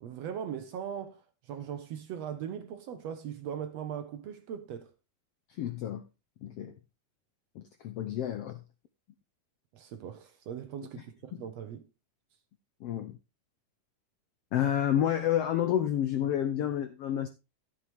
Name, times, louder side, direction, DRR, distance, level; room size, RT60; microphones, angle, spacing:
voice 1, 0.0-4.9 9.7-11.9, right 8 dB, 70° right, 1.7 m, -39 dB
voice 2, 5.6-6.0 6.4-6.7 7.6-8.6 11.3-11.4 12.8-13.2 14.5-17.3, left 10 dB, 80° left, 1.4 m, -29 dB
13.0 x 7.8 x 3.5 m
omnidirectional pair, 3.7 m